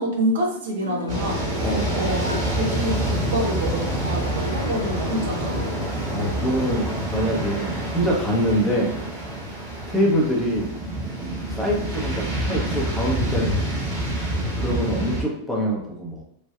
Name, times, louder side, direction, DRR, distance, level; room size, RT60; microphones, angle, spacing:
voice 1, 0.0-1.4 1.9-5.8, right 1 dB, 60° right, 0 dB, 0.6 m, -27 dB
sound 1, 0.8-3.4 4.0-6.5, left 2 dB, 85° left, 0.3 m, -36 dB
sound 2, 1.1-15.2, right 1 dB, 40° right, 1.3 m, -27 dB
voice 2, 1.6-2.1 6.1-8.9 9.9-10.7 11.5-14.0 14.6-16.2, equal, 5° left, -3 dB, 0.9 m, -25 dB
3.2 x 2.5 x 2.3 m, 0.72 s
figure-of-eight pair, 90°, 0 cm